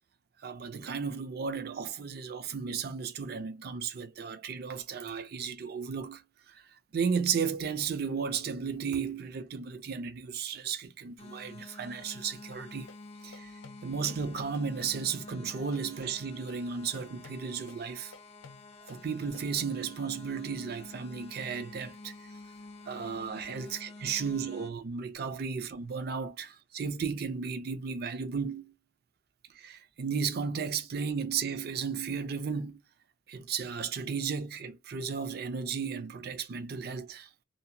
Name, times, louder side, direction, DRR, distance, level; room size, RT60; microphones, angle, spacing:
voice 1, 0.4-6.6 6.9-12.9 13.2-13.5 13.8-18.1 18.9-22.1 22.9-28.7 29.5-32.8 33.3-37.3, right 6 dB, 55° right, 0.4 m, -34 dB
sound 1, 11.2-24.7, left 2 dB, 30° left, 0.4 m, -49 dB
sound 2, 12.5-19.5, left 3 dB, 85° left, 0.5 m, -53 dB
2.8 x 2.1 x 2.6 m
head